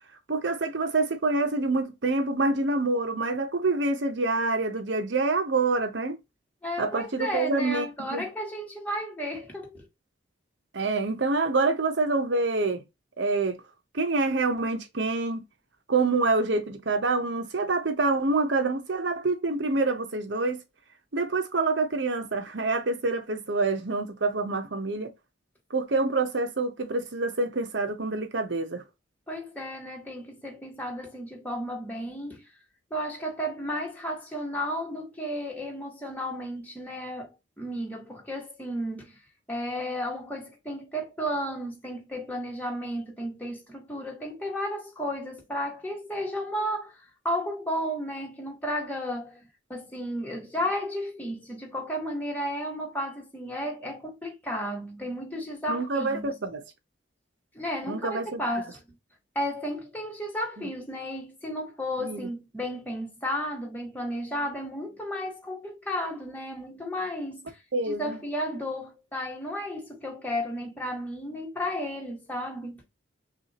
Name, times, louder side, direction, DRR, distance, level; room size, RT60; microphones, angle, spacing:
voice 1, 0.3-6.2 6.8-8.2 10.7-12.8 13.2-13.6 13.9-15.4 15.9-20.6 21.1-25.1 25.7-28.8 55.7-56.6 57.9-58.4 62.0-62.2 67.7-68.2, right 3 dB, 65° right, 0.8 m, -26 dB
voice 2, 6.6-9.9 29.3-32.5 32.9-39.2 39.5-49.4 49.7-56.3 57.5-58.8 59.3-67.6 67.9-72.8, equal, 10° left, 1.3 m, -33 dB
6.0 x 2.5 x 2.9 m
head